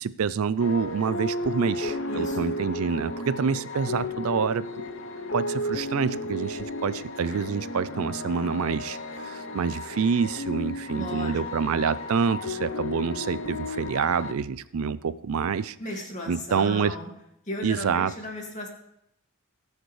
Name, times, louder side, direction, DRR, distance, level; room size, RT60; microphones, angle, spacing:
voice 1, 0.0-4.6 5.3-15.8 16.3-17.0 17.6-18.1, right 6 dB, 75° right, 16 dB, 0.4 m, -27 dB
sound 1, 0.6-14.3, left 1 dB, 60° left, 0.7 m, -33 dB
voice 2, 2.1-2.4 10.9-11.4 15.8-17.1 17.5-18.7, left 1 dB, 35° left, 0 dB, 1.9 m, -35 dB
19.5 x 6.6 x 3.2 m, 0.78 s
head